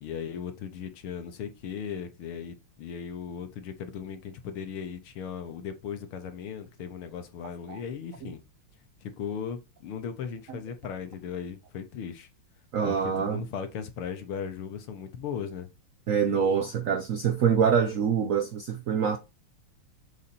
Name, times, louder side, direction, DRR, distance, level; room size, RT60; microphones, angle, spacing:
voice 1, 0.0-8.4 9.0-12.3 12.8-15.7, left 7 dB, 80° left, 2.0 m, -37 dB
voice 2, 12.7-13.4 16.1-19.2, right 7 dB, 70° right, 0.7 m, -25 dB
7.2 x 4.1 x 4.2 m
omnidirectional pair, 2.3 m